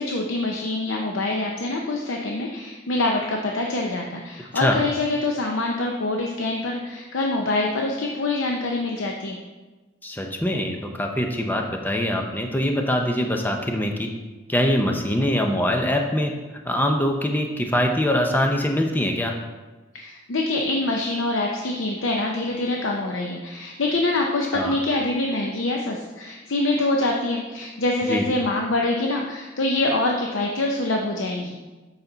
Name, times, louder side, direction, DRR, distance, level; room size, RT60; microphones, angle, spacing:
voice 1, 0.0-9.4 19.9-31.6, left 2 dB, 75° left, 1 dB, 0.7 m, -25 dB
voice 2, 10.0-14.1 14.5-16.3 16.6-19.4 24.5-24.8 28.1-28.2, equal, 10° left, 3 dB, 0.6 m, -23 dB
8.0 x 5.8 x 3.9 m, 1.2 s
head